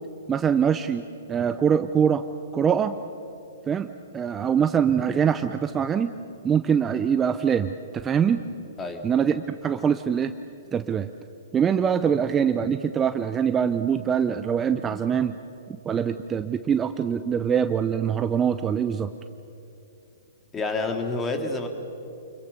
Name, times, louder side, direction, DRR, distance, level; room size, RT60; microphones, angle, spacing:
voice 1, 0.3-1.0 1.3-2.2 2.5-3.0 3.7-6.1 6.4-7.7 8.0-8.4 9.0-10.3 10.7-11.1 11.5-15.3 15.7-19.1, right 7 dB, 20° right, 9 dB, 0.7 m, -23 dB
voice 2, 20.5-21.7, left 3 dB, 20° left, 4 dB, 2.9 m, -28 dB
28.5 x 22.5 x 6.8 m, 2.8 s
hypercardioid pair, 125°, 0 cm